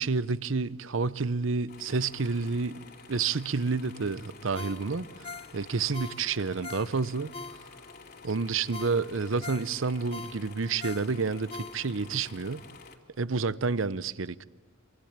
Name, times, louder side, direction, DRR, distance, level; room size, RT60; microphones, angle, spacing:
voice 1, 0.0-7.3 8.2-12.6 13.2-14.4, right 4 dB, 75° right, 0.8 m, -29 dB
sound 1, 1.7-13.0, left 4 dB, 50° left, 2.8 m, -50 dB
Ringtone, 4.5-8.0 8.4-8.5 8.7-12.2 12.6-12.7, left 4 dB, 30° left, 1.3 m, -43 dB
25.5 x 25.0 x 8.9 m
head